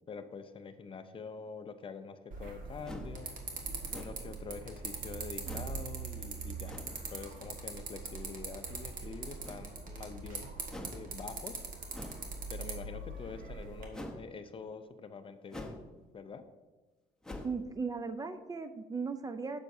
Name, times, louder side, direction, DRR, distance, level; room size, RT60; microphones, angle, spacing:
voice 1, 0.1-3.4 3.9-10.5 10.9-11.6 12.5-15.8 16.1-16.4, left 5 dB, 30° left, 9 dB, 0.6 m, -46 dB
sound 1, 2.3-13.9, right 4 dB, 55° right, 1.4 m, -42 dB
sound 2, 2.8-3.2 3.9-4.4 5.4-5.8 6.6-7.0 9.4-9.9 10.7-11.1 11.9-12.3 13.9-14.2 15.5-15.9 16.2-16.3 17.2-17.6, left 1 dB, 5° left, 0.9 m, -45 dB
voice 2, 17.4-19.6, right 4 dB, 20° right, 10 dB, 0.4 m, -37 dB
9.6 x 6.9 x 2.7 m, 1.3 s
cardioid pair, 110°, 17 cm